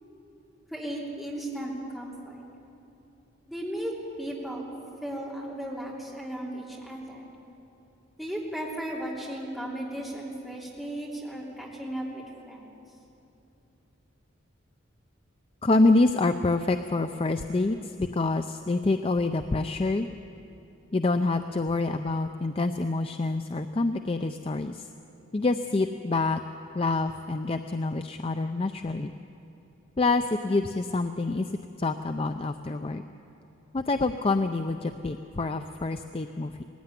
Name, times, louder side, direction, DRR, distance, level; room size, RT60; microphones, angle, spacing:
voice 1, 0.7-2.4 3.5-4.7 5.0-7.3 8.2-12.7, right 1 dB, ahead, -4 dB, 2.8 m, -36 dB
voice 2, 15.6-20.1 20.9-24.9 25.3-26.4 26.7-29.1 30.0-31.5 31.8-33.0 33.7-36.6, left 3 dB, 25° left, 8 dB, 0.4 m, -26 dB
19.5 x 15.5 x 9.8 m, 3.0 s
head